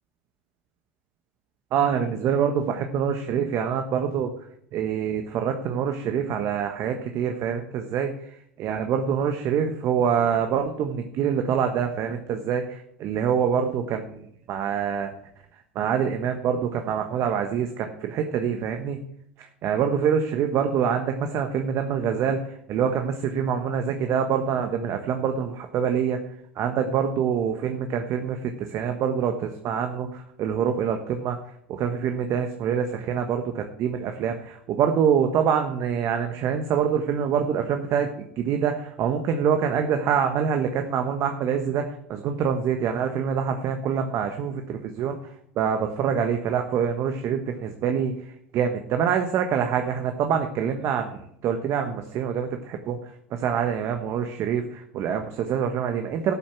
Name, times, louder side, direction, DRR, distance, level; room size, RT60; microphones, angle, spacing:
voice 1, 1.7-4.3 4.7-8.1 8.6-15.1 15.7-19.0 19.4-26.2 26.6-31.4 31.7-45.1 45.6-48.1 48.5-53.0 53.3-56.3, right 7 dB, 45° right, 6 dB, 1.2 m, -25 dB
13.0 x 7.5 x 6.0 m, 0.69 s
hypercardioid pair, 75°, 6 cm